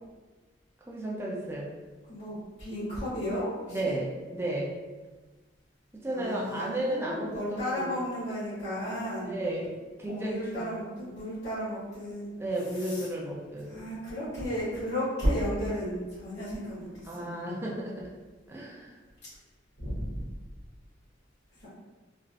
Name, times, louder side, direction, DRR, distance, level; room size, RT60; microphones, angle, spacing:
voice 1, 0.9-1.7 3.7-4.7 5.9-8.0 9.2-10.7 12.4-13.9 17.1-18.0 18.5-19.0, right 1 dB, 15° right, -4 dB, 0.4 m, -33 dB
voice 2, 2.1-4.0 6.1-9.3 10.1-12.3 12.8-13.1 13.7-17.4 19.8-20.1 21.6-21.7, equal, 55° left, -12 dB, 1.2 m, -33 dB
3.2 x 2.5 x 2.4 m, 1.3 s
head